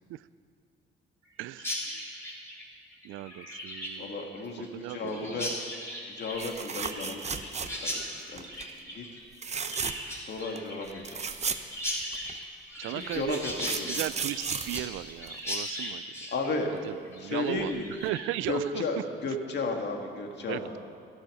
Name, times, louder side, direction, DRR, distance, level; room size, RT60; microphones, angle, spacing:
voice 1, 1.4-2.3 3.0-4.2 4.6-5.6 12.8-13.4 13.9-16.0 16.8-17.8 18.0-18.8 20.5-20.8, right 15 dB, 90° right, 17 dB, 0.4 m, -36 dB
Chirp tweet, 1.6-18.4, equal, 15° left, 3.4 m, -38 dB
voice 2, 4.0-5.5 6.1-7.5 7.8-8.5 8.9-9.1 10.2-11.4 12.9-13.9 16.3-16.7 17.2-17.9 18.5-20.7, left 3 dB, 60° left, 3 dB, 1.8 m, -34 dB
sound 1, 6.4-8.0 8.4-8.7 9.3-10.2 10.6-10.7 10.9-12.4 13.1-15.7 17.6-17.8 18.1-18.2, right 6 dB, 35° right, 0.7 m, -35 dB
12.0 x 11.5 x 6.4 m, 2.3 s
cardioid pair, 90°, 20 cm